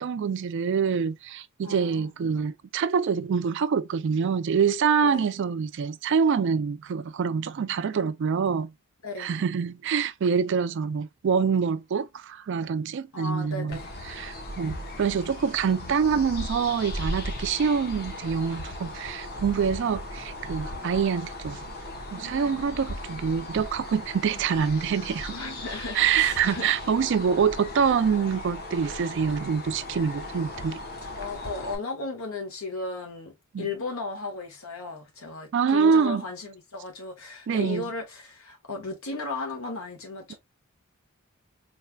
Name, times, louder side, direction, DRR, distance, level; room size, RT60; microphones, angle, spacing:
voice 1, 0.0-8.7 9.2-13.8 14.1-21.6 22.1-25.3 25.9-30.8 33.5-33.7 35.5-36.2 37.5-37.8, right 6 dB, 55° right, 0.3 m, -25 dB
voice 2, 1.6-2.1 5.0-5.3 9.0-9.4 13.1-13.9 25.3-26.7 31.0-40.3, left 3 dB, 75° left, 1.4 m, -35 dB
Random birds wooden suburban village near Moscow, 13.7-31.8, left 1 dB, 45° left, 1.0 m, -37 dB
4.3 x 3.3 x 2.2 m
head